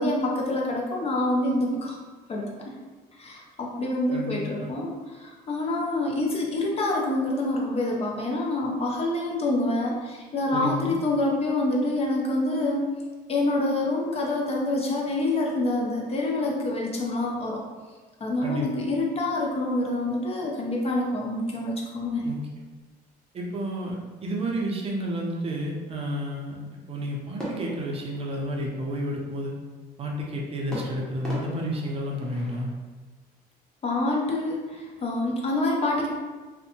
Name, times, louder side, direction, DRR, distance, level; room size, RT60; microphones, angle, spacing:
voice 1, 0.0-2.0 2.3-2.7 3.2-12.9 13.3-17.6 18.2-22.3 33.8-36.1, left 2 dB, 35° left, -1 dB, 0.5 m, -26 dB
voice 2, 4.1-4.7 10.5-10.9 18.4-18.7 22.2-22.4 23.3-29.5 30.0-32.7, equal, 35° right, -1 dB, 0.5 m, -31 dB
sound 1, 27.4-28.9 30.7-32.8, equal, 5° left, 0.9 m, -39 dB
2.5 x 2.1 x 2.8 m, 1.3 s
cardioid pair, 110°, 17 cm